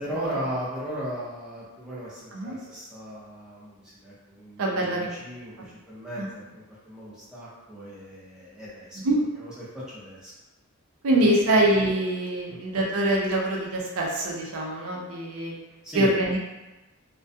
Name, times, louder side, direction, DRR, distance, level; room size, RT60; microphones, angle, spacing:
voice 1, 0.0-9.0 9.4-10.3 11.5-11.6 12.5-12.6 15.8-16.1, equal, 5° right, -9 dB, 0.6 m, -37 dB
voice 2, 4.6-5.1 5.6-5.7 6.2-6.3 9.0-9.2 11.0-15.5 15.9-16.4, right 1 dB, 80° right, -2 dB, 0.5 m, -24 dB
2.3 x 2.2 x 2.6 m, 1.1 s
head